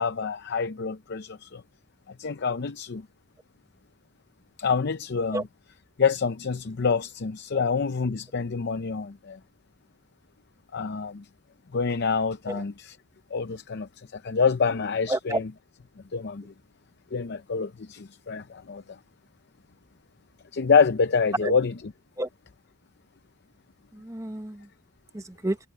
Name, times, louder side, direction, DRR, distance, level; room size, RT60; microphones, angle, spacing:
voice 1, 0.0-1.6 2.1-3.1 4.6-5.4 6.0-9.4 10.7-11.3 11.7-13.0 13.3-15.4 16.1-16.5 17.1-19.0 20.5-21.7, left 5 dB, 55° left, 0.6 m, -26 dB
voice 2, 15.1-15.4 21.4-21.5 22.2-22.3 23.9-24.7 25.1-25.6, right 1 dB, 15° right, 0.9 m, -30 dB
head